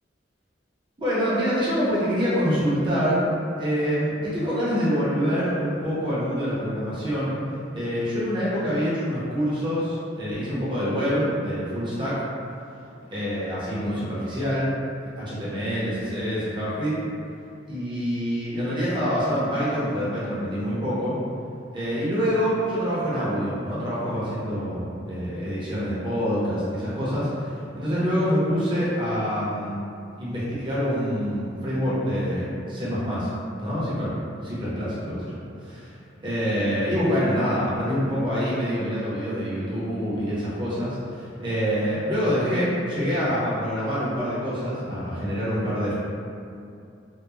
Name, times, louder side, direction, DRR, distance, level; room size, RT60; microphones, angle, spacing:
voice 1, 1.0-3.2 3.6-7.3 7.7-12.2 13.1-14.7 15.0-17.0 17.7-21.2 21.7-29.8 30.2-33.3 33.6-34.1 34.4-35.3 35.6-35.9 36.2-45.9, equal, 25° right, -10 dB, 0.8 m, -26 dB
2.8 x 2.2 x 2.3 m, 2.5 s
head